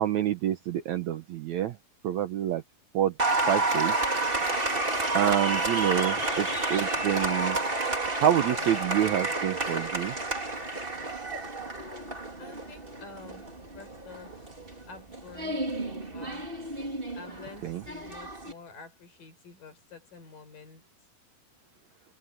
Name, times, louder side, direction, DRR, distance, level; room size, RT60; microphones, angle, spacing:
voice 1, 0.0-1.8 2.0-2.6 2.9-3.2 3.5-4.1 5.1-7.6 8.2-10.2 17.6-17.8, right 11 dB, 70° right, 1.8 m, -27 dB
Applause, 3.2-18.5, right 2 dB, 15° right, 2.9 m, -30 dB
voice 2, 12.4-14.6 14.9-16.5 17.1-20.9, left 4 dB, 65° left, 7.0 m, -49 dB
omnidirectional pair, 4.1 m